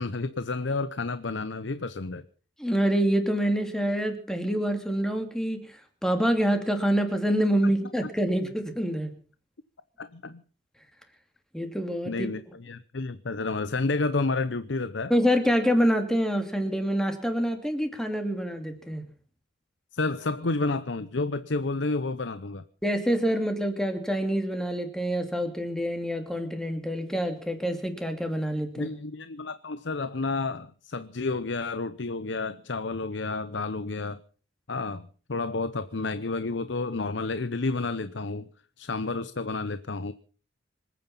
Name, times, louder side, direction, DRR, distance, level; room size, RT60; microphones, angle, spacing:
voice 1, 0.0-2.2 10.0-10.4 12.1-15.1 19.9-22.6 28.8-34.2 34.7-38.5 38.8-40.1, left 3 dB, 80° left, 0.8 m, -30 dB
voice 2, 2.6-9.1 11.5-12.3 15.1-19.1 22.8-28.9, equal, 5° left, 2.8 m, -26 dB
26.0 x 9.4 x 5.7 m
head